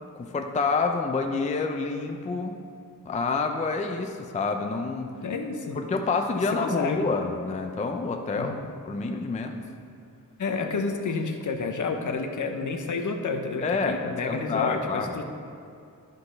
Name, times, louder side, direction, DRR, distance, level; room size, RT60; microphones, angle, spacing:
voice 1, 0.1-2.6 3.0-5.1 5.7-8.6 8.9-9.6 13.6-15.2, left 4 dB, 20° left, 4 dB, 0.4 m, -28 dB
voice 2, 5.2-5.8 6.6-7.1 8.3-8.5 10.4-15.2, left 4 dB, 60° left, 5 dB, 0.7 m, -30 dB
12.0 x 4.0 x 5.2 m, 2.4 s
wide cardioid pair, 160°, 35 cm